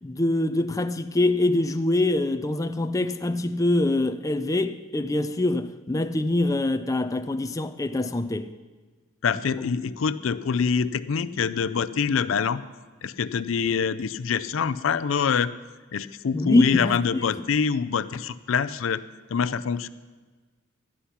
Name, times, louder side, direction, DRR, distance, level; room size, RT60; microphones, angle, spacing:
voice 1, 0.0-8.5 16.3-17.0 17.3-17.4, left 2 dB, 15° left, 0.5 m, -24 dB
voice 2, 9.2-12.6 13.0-15.5 15.9-19.0 19.3-19.9, left 6 dB, 85° left, 0.5 m, -25 dB
12.5 x 9.9 x 5.7 m
head